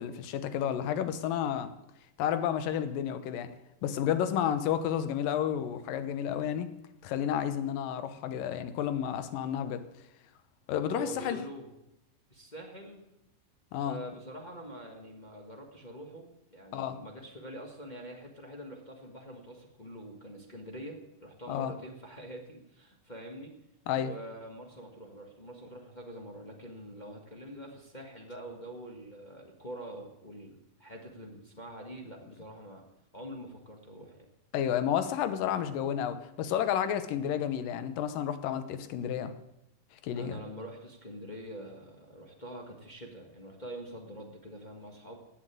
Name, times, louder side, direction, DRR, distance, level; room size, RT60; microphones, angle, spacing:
voice 1, 0.0-1.7 2.2-3.5 3.8-6.7 7.0-9.8 10.7-11.4 13.7-14.0 16.7-17.0 21.5-21.7 23.9-24.1 34.5-39.3 40.0-40.4, left 9 dB, 80° left, 10 dB, 2.7 m, -31 dB
voice 2, 10.8-11.7 12.3-13.0 13.8-23.5 24.0-32.8 33.1-34.3 40.1-45.2, right 1 dB, 25° left, 0 dB, 1.0 m, -45 dB
15.5 x 8.3 x 9.2 m, 0.88 s
omnidirectional pair, 3.9 m